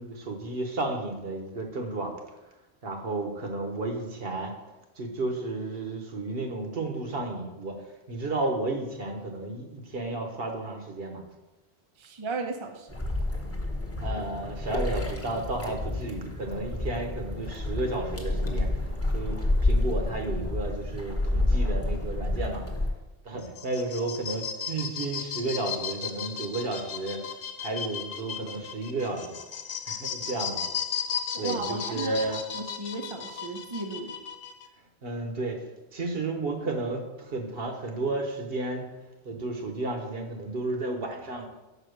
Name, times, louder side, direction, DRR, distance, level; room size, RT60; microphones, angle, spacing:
voice 1, 0.0-2.1 2.8-4.5 5.0-7.8 8.1-11.2 14.0-18.7 19.1-22.6 23.2-27.2 27.6-29.4 29.9-30.7 31.4-32.4 35.0-35.6 35.9-38.9 39.2-41.4, right 2 dB, 65° right, 3 dB, 1.2 m, -32 dB
voice 2, 12.0-13.0 31.3-34.1, right 3 dB, 30° right, 4 dB, 0.6 m, -35 dB
sound 1, 12.9-22.9, left 2 dB, 15° left, 0.9 m, -29 dB
sound 2, 23.4-34.7, left 7 dB, 60° left, 0.8 m, -35 dB
5.6 x 4.9 x 6.3 m, 1.0 s
omnidirectional pair, 1.1 m